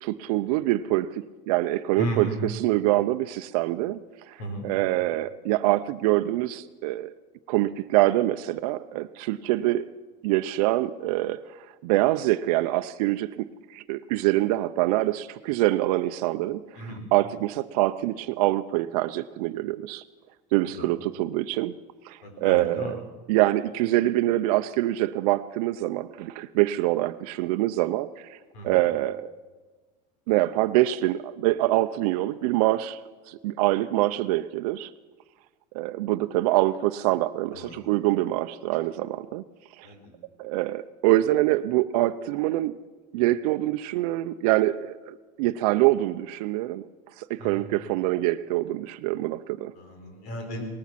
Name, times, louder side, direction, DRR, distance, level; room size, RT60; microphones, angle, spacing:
voice 1, 0.0-4.4 4.6-7.1 7.5-9.8 10.2-11.4 11.8-20.0 20.5-21.8 22.0-23.0 23.3-28.4 28.6-29.3 30.3-33.0 33.3-34.9 35.7-39.4 39.8-39.9 40.4-42.7 43.1-46.8 47.2-49.7, right 16 dB, 80° right, 9 dB, 0.5 m, -25 dB
voice 2, 2.0-2.4 4.4-4.6 16.8-17.0 20.7-20.9 22.2-22.9 28.5-28.8 37.5-37.7 39.8-40.1 47.4-47.6 49.7-50.6, right 1 dB, 70° left, 4 dB, 4.3 m, -34 dB
18.5 x 13.5 x 5.8 m, 1.3 s
cardioid pair, 150°, 19 cm